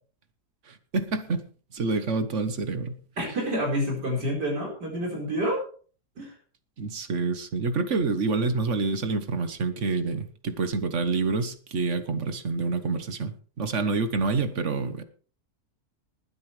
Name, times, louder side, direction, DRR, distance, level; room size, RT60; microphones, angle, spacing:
voice 1, 0.7-1.4 1.7-2.9 6.8-15.0, right 3 dB, 50° right, 10 dB, 1.4 m, -27 dB
voice 2, 3.2-5.6 6.2-6.3, equal, 85° right, -1 dB, 5.4 m, -28 dB
20.0 x 9.8 x 3.3 m, 0.42 s
omnidirectional pair, 1.8 m